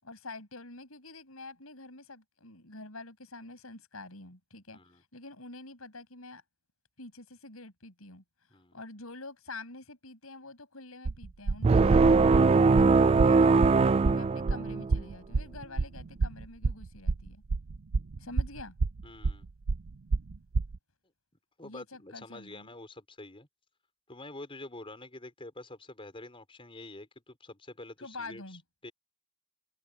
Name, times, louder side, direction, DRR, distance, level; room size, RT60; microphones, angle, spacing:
voice 1, 0.0-6.4 7.0-8.2 8.7-17.4 18.2-18.8 21.6-22.7 28.0-28.6, left 2 dB, 80° left, 7.5 m, -47 dB
sound 1, 11.1-20.8, right 3 dB, 70° right, 0.6 m, -29 dB
sound 2, 11.6-15.0, right 4 dB, 30° right, 0.3 m, -21 dB
voice 2, 19.0-19.5 21.6-23.5 24.1-28.6 28.8-28.9, left 2 dB, 25° left, 5.0 m, -47 dB
open air
head